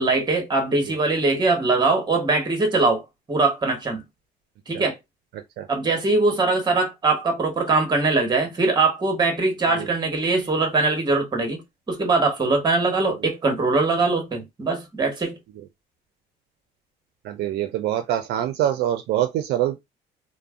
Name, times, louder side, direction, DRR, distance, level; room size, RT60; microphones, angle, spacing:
voice 1, 0.0-4.0 4.7-4.9 5.7-11.6 11.9-15.4, right 3 dB, 25° right, 1.2 m, -22 dB
voice 2, 17.2-19.8, right 12 dB, 75° right, 0.5 m, -24 dB
2.4 x 2.1 x 3.5 m
cardioid pair, 110°, 17 cm